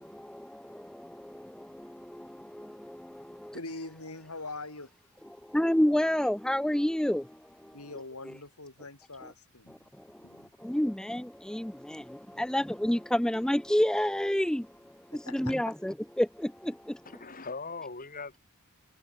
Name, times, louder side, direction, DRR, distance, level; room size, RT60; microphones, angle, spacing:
voice 1, 0.0-3.5 5.5-7.8 9.7-9.8 10.1-17.0, equal, 5° left, 0.4 m, -30 dB
voice 2, 3.5-4.9 7.7-9.8 10.2-10.5 12.3-12.5 15.2-15.7, left 2 dB, 75° left, 7.5 m, -43 dB
voice 3, 17.0-18.4, left 4 dB, 40° left, 4.0 m, -40 dB
head